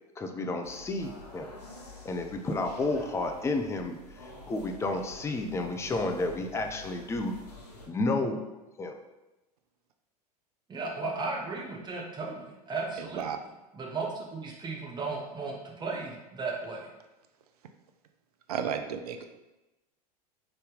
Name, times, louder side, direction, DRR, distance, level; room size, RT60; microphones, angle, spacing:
voice 1, 0.2-1.5 2.0-4.0 4.5-7.3 7.9-8.4 8.8-8.9, left 2 dB, 15° left, 5 dB, 0.5 m, -31 dB
sound 1, 0.6-7.9, left 1 dB, 80° left, 1.1 m, -48 dB
voice 2, 10.7-13.3 13.7-16.9, right 3 dB, 20° right, -1 dB, 1.1 m, -35 dB
voice 3, 18.5-19.2, right 7 dB, 70° right, 7 dB, 0.5 m, -32 dB
4.1 x 3.4 x 3.9 m, 1.0 s
figure-of-eight pair, 85°, 20 cm